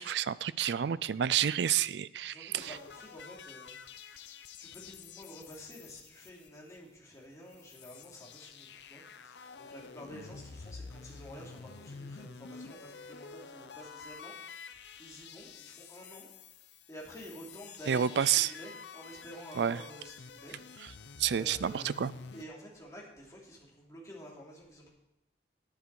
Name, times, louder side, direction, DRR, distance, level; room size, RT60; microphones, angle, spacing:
voice 1, 0.0-2.7 17.9-18.5 19.6-19.8 21.2-22.1, right 9 dB, 70° right, 18 dB, 0.4 m, -29 dB
voice 2, 2.2-16.3 16.9-20.6 21.3-24.9, equal, 20° left, -3 dB, 2.9 m, -50 dB
sound 1, 2.6-7.0 7.3-7.4 7.5-22.5, left 5 dB, 70° left, 0.6 m, -49 dB
10.5 x 10.0 x 4.7 m, 0.89 s
head